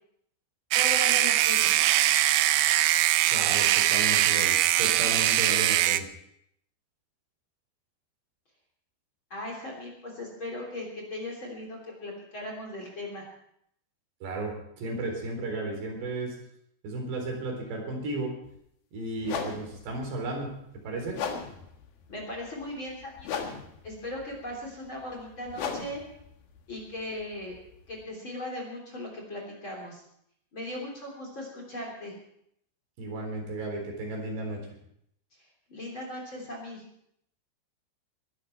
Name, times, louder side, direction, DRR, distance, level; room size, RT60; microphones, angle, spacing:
voice 1, 0.7-1.8 9.3-13.3 22.1-23.3 23.8-26.0 26.7-27.5 27.9-30.0 30.5-32.1 35.7-36.8, left 1 dB, 30° left, 0 dB, 3.7 m, -38 dB
sound 1, 0.7-6.0, right 13 dB, 90° right, 2.1 m, -22 dB
voice 2, 3.3-6.1 14.2-16.3 16.8-18.3 18.9-20.5 20.8-21.2 33.0-34.6, right 2 dB, 70° right, 1 dB, 6.2 m, -34 dB
sound 2, 18.4-18.6 19.2-28.0, left 6 dB, 65° left, 3.3 m, -39 dB
21.5 x 12.5 x 4.5 m, 0.72 s
omnidirectional pair, 5.1 m